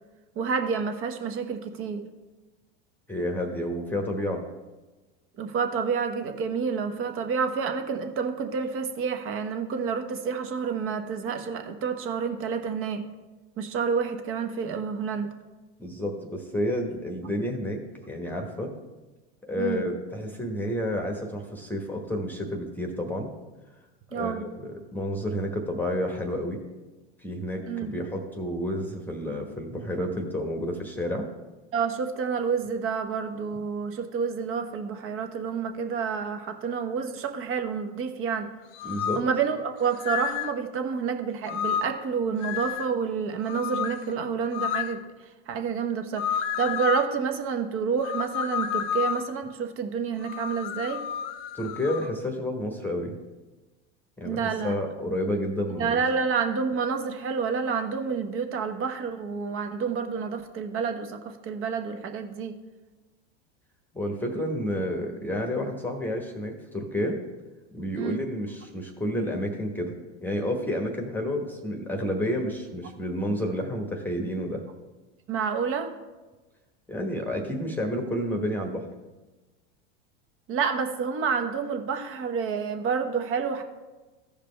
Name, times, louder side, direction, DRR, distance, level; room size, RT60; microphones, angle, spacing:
voice 1, 0.4-2.0 5.4-13.0 13.6-15.3 19.6-19.8 24.1-24.4 27.7-27.9 31.7-38.5 39.1-45.0 45.5-51.0 54.2-54.8 55.8-62.5 68.0-68.2 75.3-75.9 80.5-83.6, right 6 dB, 40° right, 6 dB, 1.1 m, -29 dB
voice 2, 3.1-4.4 15.8-18.7 19.4-23.3 24.1-26.6 27.2-31.2 38.8-39.2 51.5-53.2 54.2-56.0 63.9-67.2 67.7-69.9 70.2-74.6 76.9-78.8, equal, 5° left, 3 dB, 1.1 m, -30 dB
sound 1, 38.7-39.3 40.0-40.5 41.5-42.0 42.4-42.9 43.4-44.0 44.5-45.0 46.2-47.1 48.0-49.4 50.2-52.1, left 8 dB, 55° left, 0.6 m, -30 dB
15.0 x 5.1 x 3.3 m, 1.2 s
hypercardioid pair, 110°, 34 cm